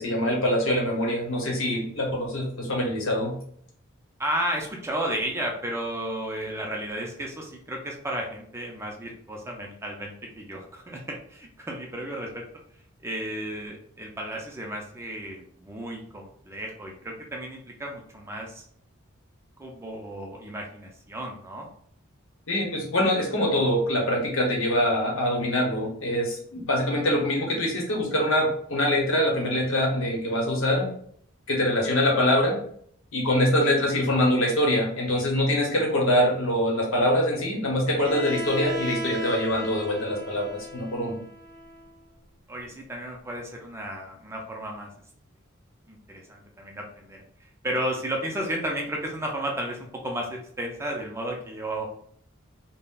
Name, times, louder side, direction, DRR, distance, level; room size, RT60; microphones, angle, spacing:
voice 1, 0.0-3.4 22.5-30.9 31.5-32.6 33.1-41.2, left 1 dB, 65° left, -1 dB, 0.8 m, -24 dB
voice 2, 4.2-12.4 13.0-18.6 19.6-21.7 42.5-44.9 45.9-47.2 47.6-51.9, right 1 dB, 10° right, 0 dB, 0.4 m, -33 dB
Bowed string instrument, 38.0-41.9, equal, 65° right, 0.6 m, -35 dB
3.6 x 2.0 x 2.3 m, 0.63 s
head